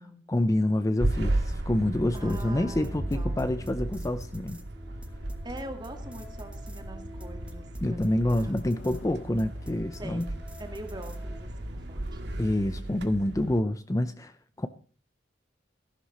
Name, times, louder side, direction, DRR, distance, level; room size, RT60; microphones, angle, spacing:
voice 1, 0.3-4.6 7.8-10.3 12.4-14.7, left 1 dB, 20° left, 11 dB, 0.6 m, -27 dB
sound 1, 1.0-13.6, right 1 dB, 65° right, 1.8 m, -35 dB
sound 2, 2.1-11.4, equal, 5° right, 1.4 m, -49 dB
voice 2, 2.1-3.7 5.4-8.6 10.0-12.6, right 1 dB, 25° right, 5 dB, 2.1 m, -44 dB
sound 3, 7.6-10.4, left 2 dB, 80° left, 2.2 m, -51 dB
14.5 x 11.0 x 4.2 m, 0.38 s
head